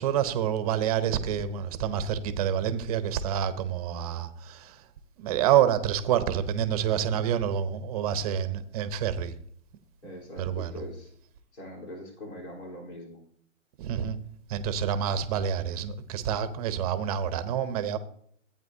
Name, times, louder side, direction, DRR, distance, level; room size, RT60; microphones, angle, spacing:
voice 1, 0.0-4.7 5.2-9.3 10.4-10.7 13.8-14.2 14.5-18.0, right 9 dB, 30° right, 0.8 m, -27 dB
voice 2, 10.0-11.1 11.5-13.2, left 1 dB, 60° left, 3.8 m, -42 dB
15.0 x 8.9 x 2.7 m
hypercardioid pair, 145°, 38 cm